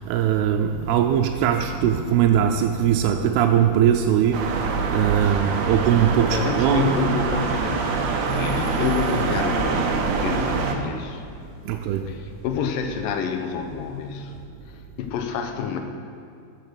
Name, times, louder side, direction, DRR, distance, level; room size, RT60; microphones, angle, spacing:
voice 1, 0.0-6.9 11.7-12.1, right 9 dB, 90° right, 3 dB, 2.6 m, -21 dB
sound 1, 0.6-14.4, right 1 dB, 45° right, 2.5 m, -40 dB
sound 2, 4.3-10.8, right 5 dB, 70° right, 2.0 m, -25 dB
voice 2, 5.2-5.6 6.3-11.2 11.7-11.8 12.1-14.3 14.7-15.8, left 6 dB, 70° left, 5 dB, 2.3 m, -28 dB
13.5 x 6.7 x 6.3 m, 2.3 s
omnidirectional pair, 4.5 m